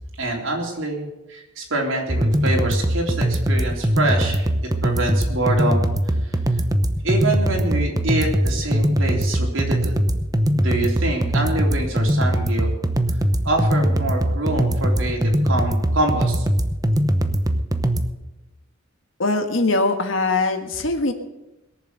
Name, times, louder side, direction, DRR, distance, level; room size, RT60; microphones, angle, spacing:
voice 1, 0.2-4.5 4.8-6.6 7.0-10.0 10.6-12.7 13.4-16.5, right 2 dB, 90° right, 0 dB, 3.5 m, -25 dB
sound 1, 2.1-18.1, equal, 20° right, 0.8 m, -21 dB
voice 2, 19.2-21.1, left 3 dB, 90° left, 6 dB, 1.7 m, -21 dB
21.5 x 7.3 x 6.7 m, 0.99 s
head